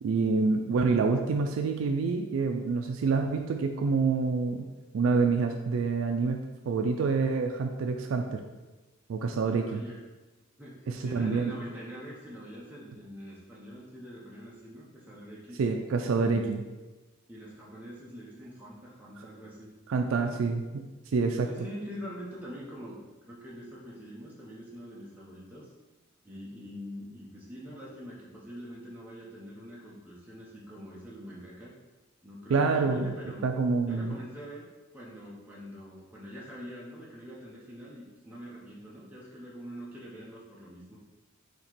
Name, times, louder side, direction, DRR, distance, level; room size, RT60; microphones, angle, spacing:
voice 1, 0.0-4.7 4.9-6.4 6.7-8.4 9.1-9.8 10.9-11.5 15.6-16.6 19.9-20.8 21.1-21.5 32.5-33.1 33.4-34.2, right 4 dB, 70° right, 4 dB, 0.3 m, -27 dB
voice 2, 9.5-10.0 10.6-15.6 16.4-16.6 17.3-19.7 20.2-20.4 21.5-25.7 26.2-31.7 32.2-33.5 33.9-34.7 34.9-41.0, equal, 10° right, -6 dB, 0.7 m, -44 dB
4.2 x 2.9 x 4.3 m, 1.2 s
head